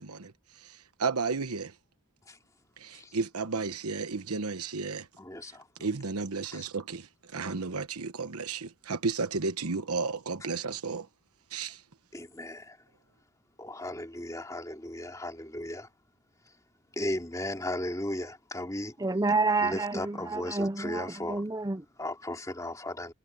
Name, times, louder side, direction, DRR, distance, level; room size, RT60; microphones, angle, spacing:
voice 1, 0.0-1.7 2.8-5.1 5.8-11.1 11.5-11.8, right 4 dB, 90° right, 1.1 m, -33 dB
voice 2, 5.2-5.6 6.5-6.6 12.1-12.8 13.6-15.9 17.0-18.9 19.6-21.4 22.0-23.1, left 1 dB, 15° left, 2.8 m, -36 dB
voice 3, 19.0-21.8, right 3 dB, 15° right, 0.6 m, -29 dB
head